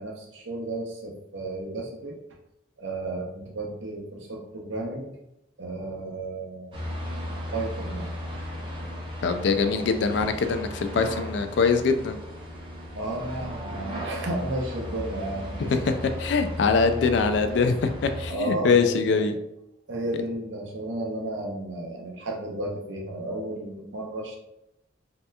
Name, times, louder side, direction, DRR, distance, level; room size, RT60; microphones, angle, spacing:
voice 1, 0.0-2.2 2.8-5.1 5.6-6.7 7.5-8.1 9.7-9.9 12.9-15.7 18.3-19.3 19.9-24.4, right 2 dB, 75° right, 0 dB, 0.7 m, -33 dB
sound 1, 6.7-18.3, equal, 25° right, 0.6 m, -36 dB
voice 2, 9.2-12.2 15.6-19.3, left 4 dB, 65° left, 8 dB, 0.3 m, -23 dB
3.2 x 2.8 x 2.2 m, 0.85 s
head